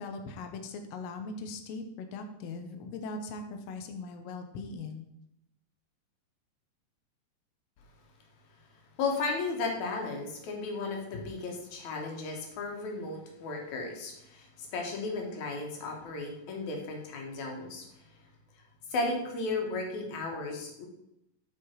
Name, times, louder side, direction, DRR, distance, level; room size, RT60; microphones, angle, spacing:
voice 1, 0.0-5.0, left 3 dB, 90° left, 6 dB, 1.4 m, -40 dB
voice 2, 9.0-18.0 18.9-20.9, left 3 dB, 60° left, 1 dB, 2.6 m, -35 dB
7.9 x 5.6 x 4.5 m, 0.83 s
omnidirectional pair, 4.1 m